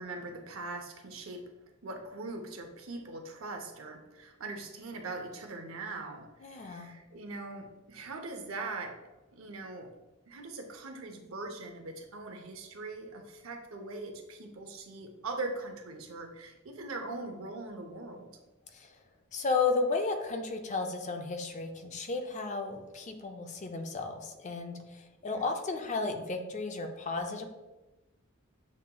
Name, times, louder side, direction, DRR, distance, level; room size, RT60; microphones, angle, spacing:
voice 1, 0.0-1.4 1.8-8.9 9.3-9.9 10.3-18.3 25.3-25.5, right 3 dB, 75° right, 4 dB, 0.7 m, -41 dB
voice 2, 6.4-6.9 18.7-18.9 19.3-27.5, left 4 dB, 35° left, 5 dB, 0.4 m, -33 dB
7.3 x 2.9 x 2.2 m, 1.1 s
head